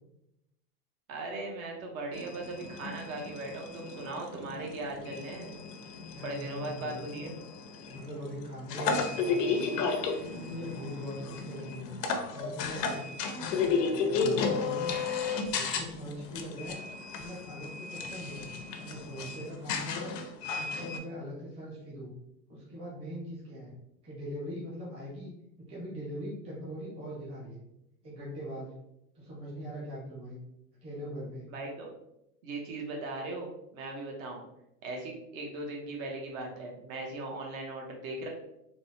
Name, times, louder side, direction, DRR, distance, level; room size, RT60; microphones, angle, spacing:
voice 1, 1.1-5.6 6.2-7.4 31.5-31.9 32.4-34.4 34.8-38.3, right 2 dB, 55° right, 0 dB, 0.8 m, -38 dB
sound 1, 2.1-21.0, left 5 dB, 80° left, 0.6 m, -34 dB
voice 2, 6.1-7.3 7.9-9.9 10.3-11.9 12.3-13.1 13.5-15.0 15.5-16.8 17.1-18.5 18.8-20.2 20.6-22.1 22.5-23.7 24.0-25.3 25.6-27.6 28.0-28.7 29.1-30.4 30.8-31.5, equal, 10° right, -7 dB, 0.6 m, -41 dB
3.7 x 2.0 x 2.6 m, 0.84 s
supercardioid pair, 155°, 48 cm